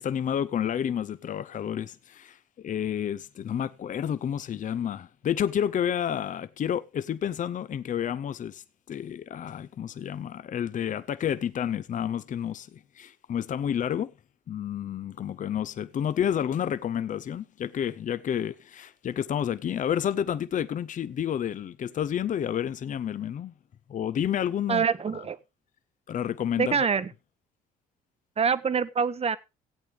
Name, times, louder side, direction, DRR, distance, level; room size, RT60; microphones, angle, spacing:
voice 1, 0.0-14.1 14.5-23.5 23.9-24.8 26.1-26.8, left 9 dB, 50° left, 0.7 m, -30 dB
voice 2, 24.7-25.4 26.6-27.1 28.4-29.4, right 6 dB, 35° right, 1.0 m, -25 dB
16.0 x 8.5 x 3.4 m
supercardioid pair, 65°, 17 cm